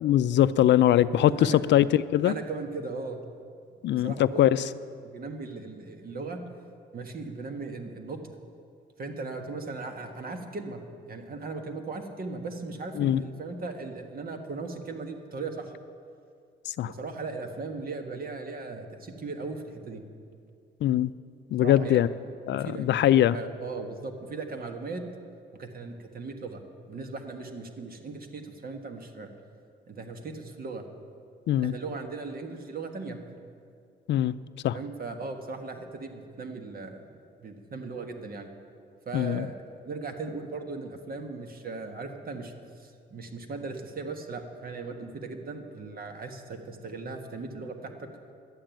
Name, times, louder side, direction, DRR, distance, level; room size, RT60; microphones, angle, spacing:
voice 1, 0.0-2.3 3.8-4.6 13.0-13.2 16.8-16.9 20.8-21.1 21.5-22.1 22.5-23.4 31.5-31.7 34.1-34.3 34.6-34.8 39.1-39.5, left 12 dB, 65° left, 15 dB, 0.4 m, -22 dB
voice 2, 1.2-1.8 2.2-3.2 3.9-4.7 5.0-6.4 6.9-8.2 9.0-10.8 11.1-15.7 16.8-20.0 21.6-22.0 22.5-25.0 25.5-29.3 29.9-30.8 31.6-33.2 34.7-37.1 37.4-38.5 39.0-39.5 39.8-42.5 42.8-48.1, right 3 dB, 45° right, 5 dB, 1.5 m, -38 dB
11.5 x 8.9 x 9.1 m, 2.3 s
cardioid pair, 90°, 20 cm